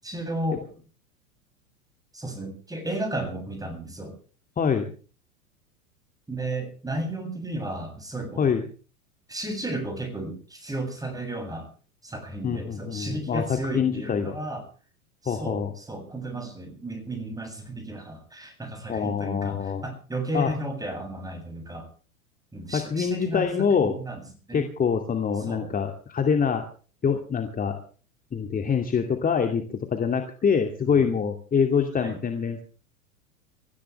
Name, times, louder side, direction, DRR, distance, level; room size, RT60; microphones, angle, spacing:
voice 1, 0.0-0.7 2.1-4.2 6.3-8.4 9.3-11.7 12.0-14.6 15.2-21.9 22.5-23.4 23.8-24.2 24.5-24.7 25.5-25.7 30.8-31.1 32.0-32.2, right 1 dB, 10° right, 6 dB, 7.5 m, -33 dB
voice 2, 4.6-4.9 8.4-8.7 12.4-13.4 13.7-14.4 15.3-15.7 18.9-19.8 20.3-20.5 22.7-23.9 24.5-26.6 27.0-27.8 28.3-32.6, left 6 dB, 20° left, 5 dB, 2.5 m, -25 dB
25.0 x 15.5 x 3.4 m, 0.40 s
figure-of-eight pair, 95°, 42 cm